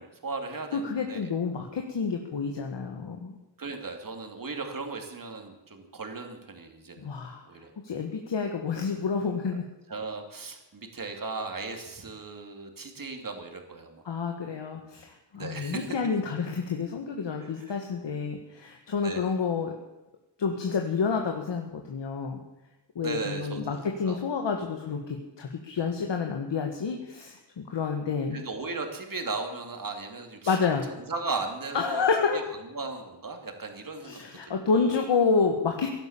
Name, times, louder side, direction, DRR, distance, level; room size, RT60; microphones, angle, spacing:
voice 1, 0.0-1.3 3.6-7.1 7.4-7.7 9.9-14.0 15.3-15.9 17.4-17.8 19.0-19.3 23.0-24.2 25.8-25.9 28.3-30.6 30.9-32.0 32.3-32.4 32.7-35.0, right 3 dB, 50° right, 5 dB, 2.7 m, -37 dB
voice 2, 0.7-3.4 7.0-7.4 7.8-9.6 14.1-19.7 20.4-22.4 23.0-28.4 30.5-30.9 31.7-32.6 34.0-35.9, left 5 dB, 75° left, 3 dB, 1.8 m, -29 dB
17.0 x 11.5 x 7.2 m, 1.0 s
wide cardioid pair, 85°, 43 cm